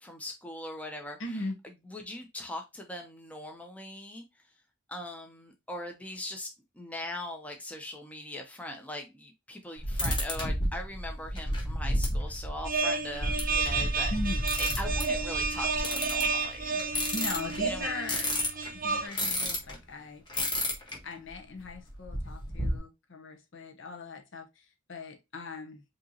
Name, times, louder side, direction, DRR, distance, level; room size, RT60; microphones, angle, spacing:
voice 1, 0.0-1.4 1.9-4.3 4.9-6.5 6.7-14.1 14.6-16.8 17.6-17.9, left 1 dB, 5° left, 0.6 m, -40 dB
voice 2, 1.2-1.5 14.1-14.4 17.1-18.3 18.8-20.4 21.0-25.8, left 2 dB, 65° left, 1.0 m, -39 dB
sound 1, 9.8-19.8 20.3-21.0 21.3-21.4 21.6-22.8, equal, 25° left, 1.4 m, -32 dB
sound 2, 12.6-19.1, right 4 dB, 45° right, 0.5 m, -31 dB
5.1 x 2.9 x 2.8 m
head